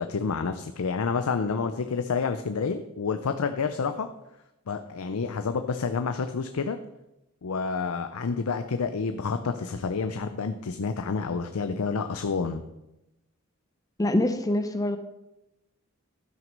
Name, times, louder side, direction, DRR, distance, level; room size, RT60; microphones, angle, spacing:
voice 1, 0.0-4.1 4.7-6.8 7.4-12.6, left 5 dB, 85° left, 8 dB, 0.5 m, -29 dB
voice 2, 14.0-15.0, left 1 dB, 15° left, 9 dB, 0.5 m, -24 dB
12.5 x 6.0 x 5.3 m, 0.93 s
head